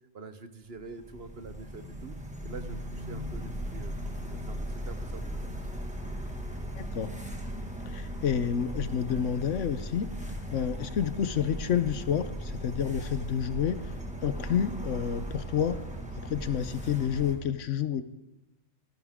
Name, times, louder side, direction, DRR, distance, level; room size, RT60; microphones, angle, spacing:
voice 1, 0.1-2.2 2.4-5.4, right 4 dB, 50° right, 10 dB, 1.1 m, -45 dB
sound 1, 0.8-17.4, equal, 5° right, 1.6 m, -37 dB
voice 2, 6.7-7.1 7.8-10.1 10.5-13.8 14.2-15.8 16.2-18.0, left 8 dB, 65° left, 12 dB, 1.1 m, -29 dB
28.0 x 11.0 x 3.6 m, 0.92 s
omnidirectional pair, 1.4 m